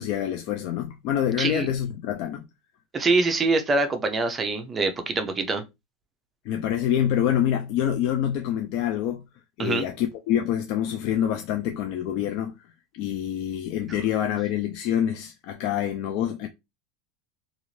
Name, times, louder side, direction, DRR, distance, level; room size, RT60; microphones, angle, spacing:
voice 1, 0.0-2.4 6.5-9.2 9.6-12.6 12.9-16.5, left 10 dB, 55° left, 0.4 m, -26 dB
voice 2, 1.4-1.7 2.9-5.6 9.6-9.8, right 3 dB, 20° right, 0.5 m, -24 dB
2.5 x 2.4 x 3.1 m
supercardioid pair, 150°, 0 cm